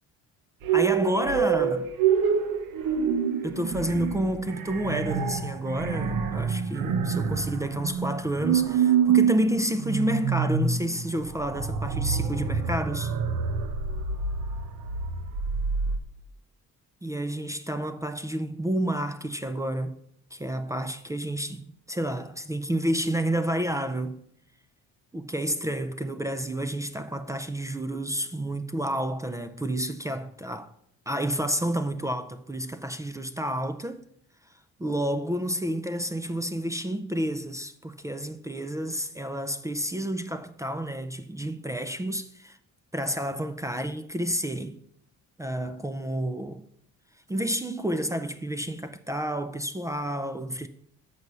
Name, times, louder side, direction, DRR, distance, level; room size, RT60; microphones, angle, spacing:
sound 1, 0.6-16.0, right 6 dB, 80° right, 1.0 m, -27 dB
voice 1, 0.7-1.8 3.4-13.1 17.0-20.0 20.3-24.2 25.1-30.7 31.1-34.0 34.8-42.6 42.9-44.8 45.4-46.7 47.3-50.7, right 1 dB, 10° right, 0.4 m, -30 dB
6.8 x 6.0 x 6.6 m
cardioid pair, 120°, 33 cm